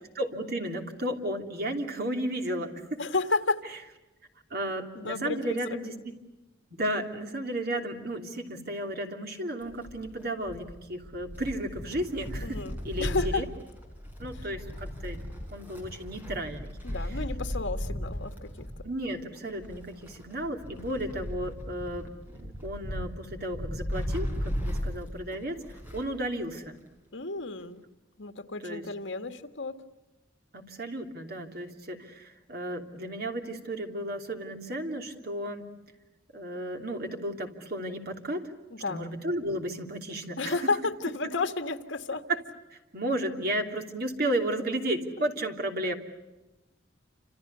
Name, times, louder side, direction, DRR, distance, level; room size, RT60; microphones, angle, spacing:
voice 1, 0.2-3.0 4.5-6.1 6.7-12.6 12.8-13.4 14.2-15.2 15.5-16.8 18.8-25.6 25.9-26.8 28.6-28.8 30.5-35.7 36.3-38.5 38.9-40.6 42.3-42.4 42.7-45.9, right 1 dB, 55° right, 4 dB, 3.0 m, -33 dB
voice 2, 3.0-3.6 5.0-5.8 12.4-13.4 14.3-14.5 16.8-18.5 27.1-27.8 28.2-29.7 38.7-39.1 40.4-42.2, left 3 dB, 75° left, 8 dB, 1.8 m, -32 dB
Wind, 9.6-26.2 26.5-26.6 27.6-27.7, equal, 10° right, 5.4 m, -36 dB
29.0 x 27.0 x 6.9 m, 1.1 s
head